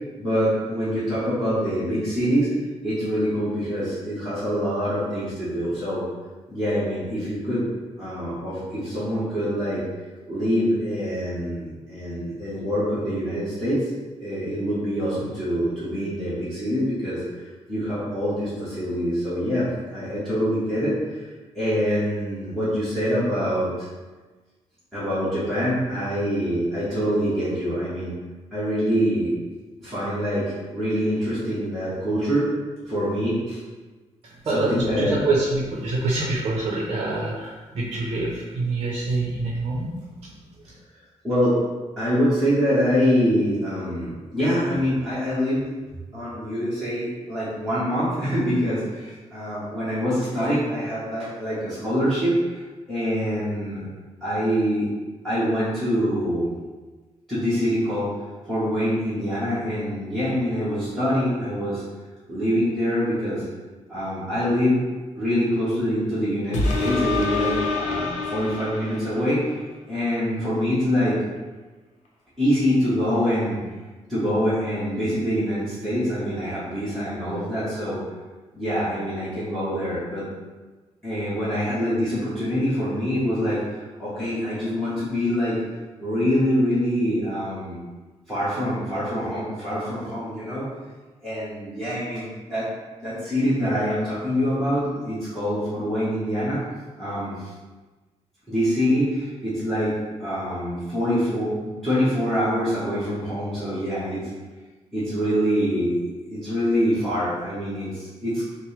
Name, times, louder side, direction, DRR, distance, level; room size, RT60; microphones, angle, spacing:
voice 1, 0.2-2.5 2.8-6.0 6.5-7.6 8.0-9.8 10.3-13.9 14.2-17.2 17.7-21.3 21.5-23.9 24.9-28.1 28.5-29.3 29.8-32.5 32.8-33.6 34.5-35.2 41.2-41.6 42.0-45.7 46.1-52.6 52.9-53.8 54.2-54.9 55.2-56.6 57.3-58.1 58.4-61.8 62.3-63.4 63.9-64.8 65.2-69.6 69.9-71.2 72.4-73.6 74.1-78.0 78.5-80.2 81.0-85.6 86.0-87.8 88.3-90.7 91.2-92.7 93.0-96.6 97.0-97.5 98.5-104.2 104.9-108.4, equal, ahead, -13 dB, 1.2 m, -25 dB
voice 2, 34.2-40.8, right 2 dB, 45° right, -4 dB, 0.7 m, -26 dB
sound 1, 66.5-69.5 70.0-70.1, left 3 dB, 90° left, 0.7 m, -26 dB
6.1 x 2.1 x 3.2 m, 1.3 s
wide cardioid pair, 170°, 12 cm